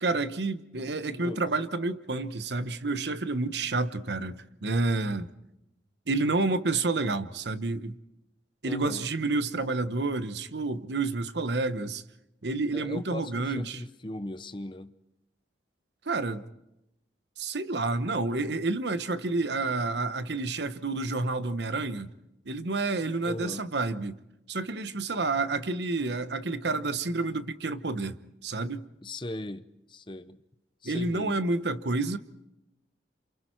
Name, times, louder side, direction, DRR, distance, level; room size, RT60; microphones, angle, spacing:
voice 1, 0.0-5.3 6.1-8.0 8.6-12.0 12.4-13.8 16.1-16.4 17.4-22.1 22.5-24.2 24.5-28.2 28.4-28.9 30.8-32.2, right 3 dB, 80° right, 1.1 m, -29 dB
voice 2, 1.1-1.4 8.6-9.0 12.7-14.9 23.2-23.6 29.0-30.4 30.8-31.4, left 1 dB, 25° left, 0.8 m, -38 dB
29.0 x 27.5 x 4.6 m
head